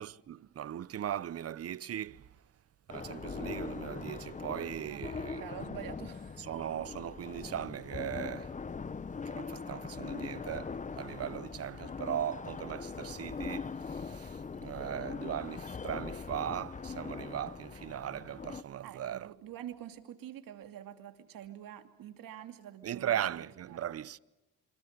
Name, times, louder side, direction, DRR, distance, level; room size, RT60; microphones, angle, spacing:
voice 1, 0.0-2.3 2.9-5.4 6.4-8.5 9.3-19.3 22.8-24.2, right 10 dB, 45° right, 0.8 m, -38 dB
sound 1, 2.9-18.6, left 5 dB, 20° left, 0.8 m, -41 dB
voice 2, 4.9-6.5 18.8-23.9, right 11 dB, 75° right, 2.7 m, -47 dB
27.5 x 25.5 x 6.7 m
cardioid pair, 100°, 34 cm